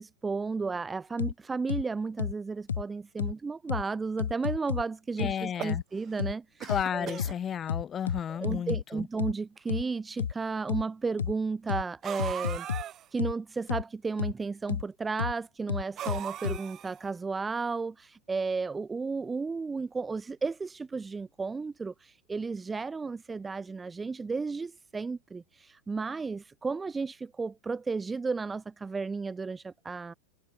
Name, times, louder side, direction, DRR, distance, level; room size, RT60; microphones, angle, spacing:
voice 1, 0.0-7.2 8.4-30.1, right 4 dB, 15° right, 0.7 m, -33 dB
sound 1, 1.2-1.3 1.7-1.8 2.2-2.3 2.7-2.8 3.2-3.3 3.7-3.8 4.2-4.8 5.2-5.3 5.7-5.8 6.2-6.3 6.7-6.8 7.2-7.3 7.7-8.8 9.2-9.3 9.7-9.8 10.2-10.3 10.7-10.8 11.2-11.3 11.7-11.8 12.2-12.8 13.2-13.3 13.7-13.8 14.2-14.3 14.7-14.8 15.2-15.3 15.7-16.6, left 7 dB, 70° left, 0.3 m, -30 dB
voice 2, 5.2-5.8 6.7-9.1, left 8 dB, 25° left, 2.5 m, -33 dB
sound 2, 5.3-6.2 6.6-7.4 8.2-8.3 8.5-8.6 9.6-9.7 12.0-13.1 16.0-17.1, right 11 dB, 30° right, 1.5 m, -39 dB
figure-of-eight pair, 90°, 0 cm